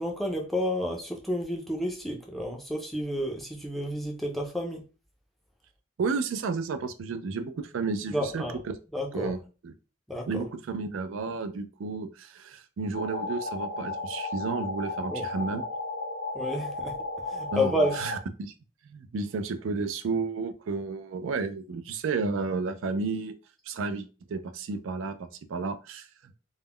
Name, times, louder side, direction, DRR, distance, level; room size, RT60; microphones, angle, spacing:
voice 1, 0.0-4.8 8.1-8.6 8.9-9.3 10.1-10.5 15.1-15.2 16.3-17.0 17.3-18.0, equal, ahead, 0 dB, 0.4 m, -30 dB
voice 2, 6.0-8.7 9.1-9.7 10.3-15.6 17.5-18.5 18.8-23.3 23.7-26.3, right 4 dB, 85° right, 9 dB, 0.4 m, -32 dB
sound 1, 12.9-18.2, left 2 dB, 75° left, 0.6 m, -34 dB
2.3 x 2.1 x 3.5 m, 0.33 s
head